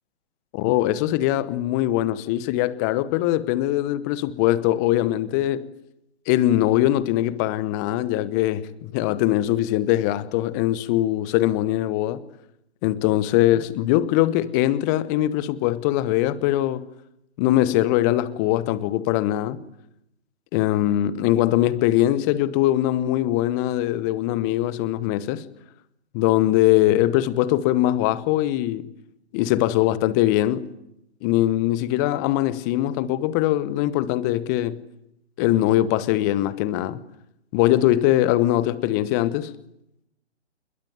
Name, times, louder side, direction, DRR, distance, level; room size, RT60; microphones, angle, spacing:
voice 1, 0.5-5.7 6.3-12.2 12.8-16.9 17.4-19.6 20.5-25.4 26.1-28.9 29.3-30.7 31.2-34.8 35.4-37.0 37.5-39.5, left 14 dB, 15° left, 1.0 m, -22 dB
27.5 x 22.0 x 9.4 m
figure-of-eight pair, 140°, 35 cm